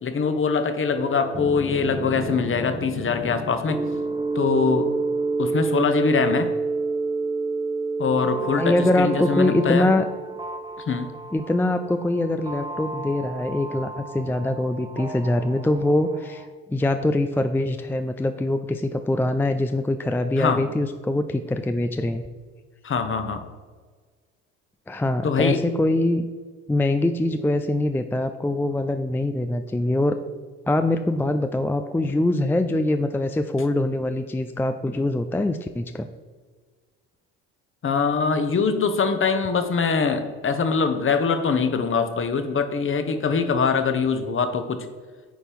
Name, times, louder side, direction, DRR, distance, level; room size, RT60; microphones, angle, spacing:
voice 1, 0.0-3.8 4.3-4.9 5.4-6.5 8.0-9.9 10.9-11.1 20.4-20.6 22.8-23.5 25.2-25.6 37.8-44.9, left 5 dB, 40° left, 8 dB, 1.2 m, -23 dB
sound 1, 0.9-16.5, right 3 dB, 15° right, 1.0 m, -30 dB
voice 2, 8.6-10.0 11.3-22.3 24.9-26.3 26.7-30.2 30.7-36.1, left 1 dB, 5° left, 8 dB, 0.4 m, -23 dB
9.2 x 4.3 x 5.3 m, 1.5 s
hypercardioid pair, 65°, 33 cm